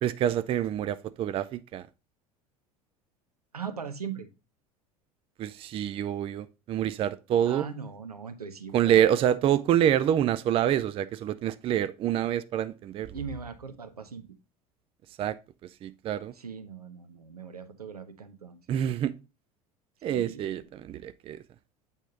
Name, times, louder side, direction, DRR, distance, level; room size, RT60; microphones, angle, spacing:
voice 1, 0.0-1.9 5.4-7.7 8.7-13.2 15.2-15.3 15.8-16.3 18.7-19.1 20.0-21.4, right 10 dB, 30° right, 0.4 m, -26 dB
voice 2, 3.5-4.3 7.5-9.5 13.1-14.3 16.4-18.6 20.0-20.6, right 6 dB, 80° right, 0.7 m, -40 dB
8.2 x 3.6 x 3.9 m
figure-of-eight pair, 70°, 19 cm